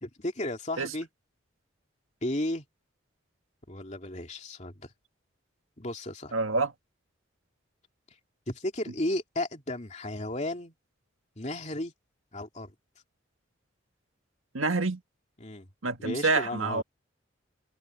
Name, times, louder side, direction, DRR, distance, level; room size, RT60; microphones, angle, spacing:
voice 1, 0.0-1.1 2.2-2.6 3.7-4.9 5.8-6.3 8.5-10.7 11.4-11.9 12.3-12.7 15.4-15.7 16.0-16.8, left 1 dB, 35° left, 2.9 m, -34 dB
voice 2, 6.3-6.7 14.5-15.0 15.8-16.8, right 3 dB, 90° right, 1.8 m, -27 dB
head